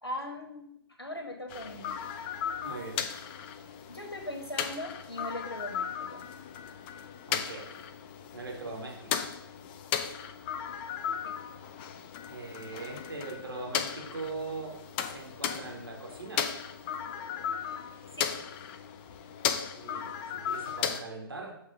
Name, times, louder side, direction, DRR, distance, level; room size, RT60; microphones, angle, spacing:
voice 1, 0.0-0.7 1.0-1.9 3.9-6.2 11.2-11.3 18.2-18.3, left 1 dB, 85° left, 1 dB, 1.6 m, -39 dB
sound 1, 1.5-21.0, left 8 dB, 25° left, 0.6 m, -36 dB
voice 2, 2.6-3.0 7.3-7.8 8.3-9.2 12.3-16.5 19.7-21.6, right 3 dB, 65° right, 0 dB, 2.2 m, -41 dB
7.3 x 4.1 x 6.4 m, 0.76 s
figure-of-eight pair, 125°, 13 cm